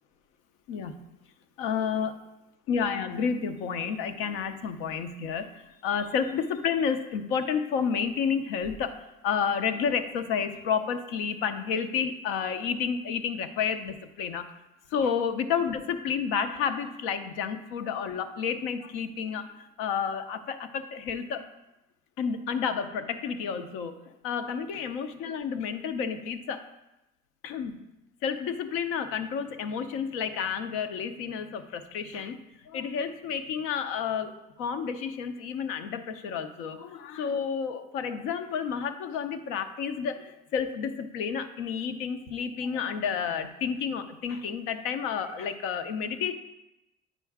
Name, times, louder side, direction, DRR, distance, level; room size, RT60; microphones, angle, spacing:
voice 1, 0.7-1.0 1.6-2.2 2.7-14.5 14.9-21.5 22.2-26.6 27.4-27.8 28.2-46.3, left 6 dB, 80° left, 9 dB, 0.7 m, -30 dB
8.3 x 4.6 x 3.5 m, 0.94 s
supercardioid pair, 90°, 21 cm